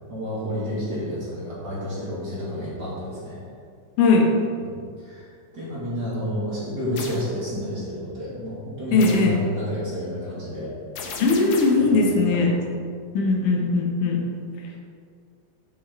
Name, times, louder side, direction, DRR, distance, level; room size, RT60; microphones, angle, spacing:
voice 1, 0.1-3.4 4.6-10.8 11.8-12.4 12.8-12.9, left 1 dB, 35° right, -9 dB, 2.6 m, -30 dB
voice 2, 4.0-4.3 8.9-9.4 11.2-12.6 13.1-14.2, left 3 dB, 85° left, 1 dB, 2.5 m, -19 dB
sound 1, 7.0-7.3 9.0-9.4 11.0-11.9, left 4 dB, 65° left, 1.8 m, -35 dB
10.0 x 6.8 x 3.4 m, 2.2 s
omnidirectional pair, 3.5 m